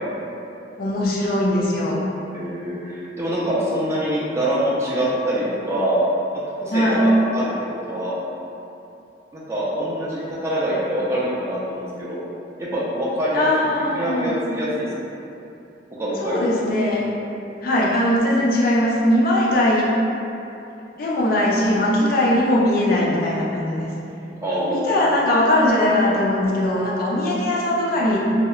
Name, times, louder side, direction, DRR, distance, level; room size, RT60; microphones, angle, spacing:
voice 1, 0.8-2.1 6.7-7.0 13.3-14.3 16.2-17.1 17.6-19.9 21.0-23.9 24.5-28.2, left 1 dB, 55° left, -5 dB, 0.4 m, -20 dB
voice 2, 2.3-6.0 6.3-8.2 9.3-12.3 12.6-14.9 16.0-16.4 24.4-24.9, right 1 dB, 15° right, -8 dB, 0.4 m, -25 dB
2.8 x 2.1 x 2.3 m, 2.8 s
head